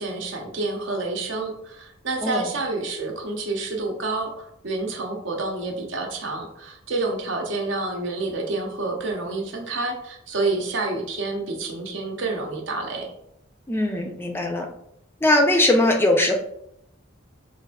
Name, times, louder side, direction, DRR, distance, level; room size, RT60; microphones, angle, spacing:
voice 1, 0.0-13.1, right 3 dB, 65° right, 1 dB, 0.7 m, -28 dB
voice 2, 13.7-14.7 15.2-16.4, left 1 dB, 10° left, 2 dB, 0.4 m, -20 dB
4.6 x 2.5 x 2.3 m, 0.75 s
head